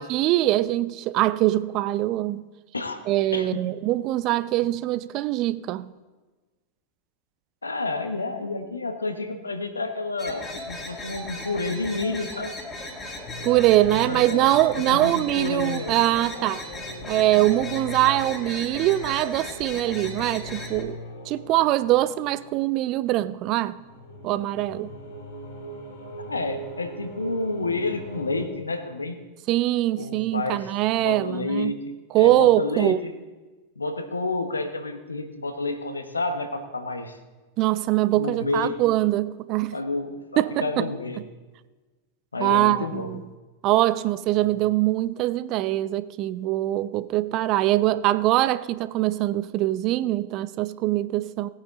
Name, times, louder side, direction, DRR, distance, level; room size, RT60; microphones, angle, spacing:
voice 1, 0.0-2.4 3.1-5.9 13.4-16.6 17.1-21.0 21.3-23.8 24.2-24.9 29.5-31.7 32.1-33.0 37.6-39.7 40.4-40.9 42.4-43.2 43.6-51.5, right 15 dB, 40° right, 0.4 m, -23 dB
voice 2, 7.6-12.6 14.1-14.6 14.9-16.0 26.2-29.2 30.0-33.1 33.8-37.2 38.1-38.8 39.7-41.2 42.3-43.2 44.3-44.5, left 3 dB, 80° left, 1.2 m, -30 dB
sound 1, 10.2-20.8, left 1 dB, 20° left, 2.2 m, -37 dB
sound 2, 13.2-28.5, left 1 dB, 55° left, 2.9 m, -40 dB
18.5 x 8.9 x 3.8 m
figure-of-eight pair, 90°, 0 cm